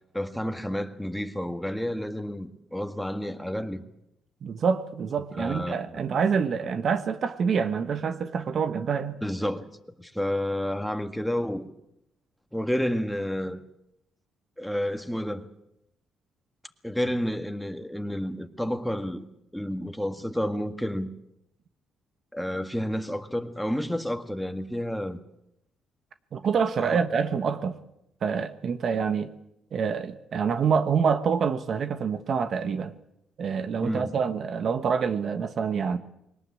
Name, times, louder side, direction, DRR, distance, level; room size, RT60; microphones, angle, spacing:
voice 1, 0.1-3.8 5.4-5.8 9.2-9.7 10.0-11.7 12.5-13.6 14.6-15.5 16.8-19.3 19.5-21.1 22.3-25.2 26.8-27.0 33.8-34.1, equal, ahead, 1.8 m, -30 dB
voice 2, 4.4-9.2 26.3-27.8 28.2-29.3 29.7-32.9 33.4-36.0, right 6 dB, 55° right, 1.3 m, -26 dB
21.5 x 19.0 x 8.5 m
cardioid pair, 90°, 0 cm